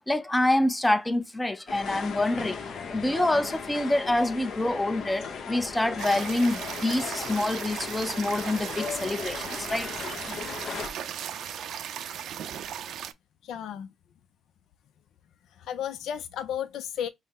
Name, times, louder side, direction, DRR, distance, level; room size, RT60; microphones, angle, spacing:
voice 1, 0.0-2.6 2.9-9.9, left 1 dB, 10° left, 0.5 m, -26 dB
sound 1, 1.7-10.9, left 6 dB, 60° left, 0.8 m, -37 dB
sound 2, 6.0-13.1, right 9 dB, 75° right, 0.5 m, -37 dB
voice 2, 13.4-13.9 15.5-17.1, left 9 dB, 80° left, 0.4 m, -33 dB
5.4 x 2.0 x 4.0 m
cardioid pair, 90°, 0 cm